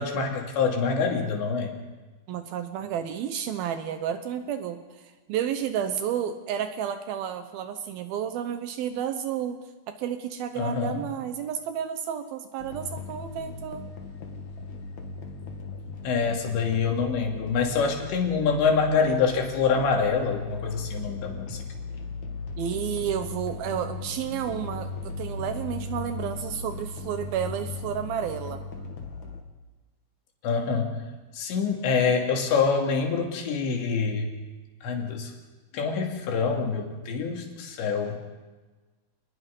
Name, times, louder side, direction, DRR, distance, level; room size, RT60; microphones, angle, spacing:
voice 1, 0.0-1.8 10.6-11.0 16.0-21.6 30.4-31.0 31.3-34.3 34.8-35.3 35.7-38.2, left 5 dB, 65° left, 2 dB, 4.7 m, -26 dB
voice 2, 2.3-5.0 5.3-9.6 9.9-13.9 22.6-28.7, right 9 dB, 85° right, 9 dB, 2.1 m, -31 dB
sound 1, 12.6-29.4, left 4 dB, 50° left, 2.7 m, -37 dB
29.0 x 20.5 x 5.4 m, 1.3 s
omnidirectional pair, 5.7 m